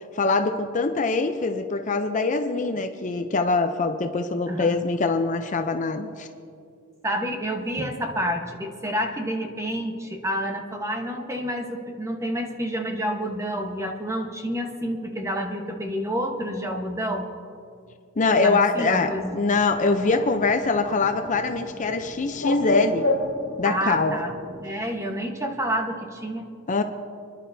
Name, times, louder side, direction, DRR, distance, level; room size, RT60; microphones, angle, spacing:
voice 1, 0.1-6.3 18.2-23.1 23.6-24.2 26.7-26.8, left 3 dB, 35° left, 7 dB, 0.5 m, -23 dB
voice 2, 4.5-4.8 7.0-17.3 18.4-19.4 23.6-24.3 24.6-26.4, equal, 15° right, 3 dB, 1.1 m, -29 dB
Bird, 19.0-24.6, left 1 dB, 60° left, 3.5 m, -31 dB
28.0 x 11.0 x 2.7 m, 2.4 s
head